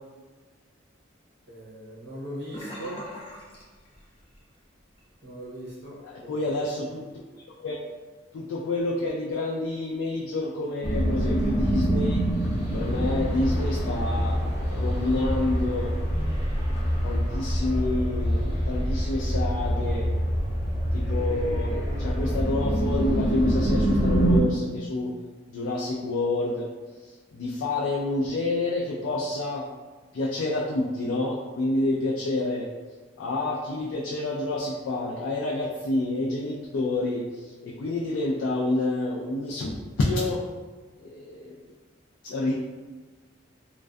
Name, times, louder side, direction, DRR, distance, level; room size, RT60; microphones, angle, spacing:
voice 1, 1.5-3.1 5.2-6.4, right 1 dB, 60° right, -5 dB, 0.7 m, -39 dB
Sink (filling or washing), 2.5-4.5 4.8-5.1 5.5-5.6, equal, 30° left, 0.5 m, -41 dB
voice 2, 6.0-7.8 8.3-12.2 12.7-15.9 17.0-20.1 20.9-25.1 25.5-26.7 27.0-29.7 30.1-32.7 33.2-40.4 41.0-41.6 42.2-42.5, left 2 dB, 85° left, -3 dB, 0.3 m, -28 dB
sound 1, 10.8-24.4, equal, 60° left, 0.8 m, -25 dB
2.4 x 2.2 x 2.3 m, 1.4 s
head